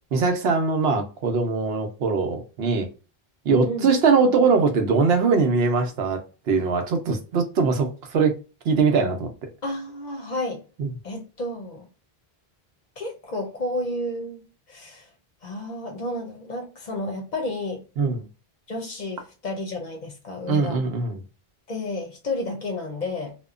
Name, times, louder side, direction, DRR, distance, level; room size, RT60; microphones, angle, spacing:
voice 1, 0.1-2.9 3.5-8.4 8.6-9.5 10.8-10.9 18.0-18.3 20.5-21.2, right 4 dB, 80° right, 0.9 m, -22 dB
voice 2, 9.6-10.6 11.0-11.9 13.0-15.1 15.4-17.8 18.7-20.8 21.7-23.4, left 1 dB, 50° left, 0.7 m, -31 dB
2.9 x 2.1 x 2.3 m
omnidirectional pair, 1.0 m